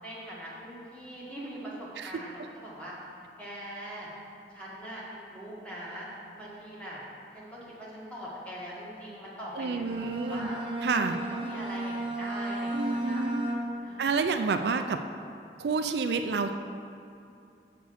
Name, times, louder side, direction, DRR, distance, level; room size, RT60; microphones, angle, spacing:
voice 1, 0.0-2.9 3.4-4.1 4.5-6.1 6.3-7.0 7.3-10.6 11.1-13.3 13.8-14.2, equal, 5° left, -7 dB, 1.7 m, -42 dB
voice 2, 9.6-10.5 10.8-11.2 12.7-13.5 14.0-15.0 15.6-16.5, right 4 dB, 75° right, 7 dB, 0.4 m, -29 dB
Bowed string instrument, 9.8-14.0, right 1 dB, 30° right, 1.0 m, -33 dB
6.7 x 6.5 x 6.3 m, 2.6 s
head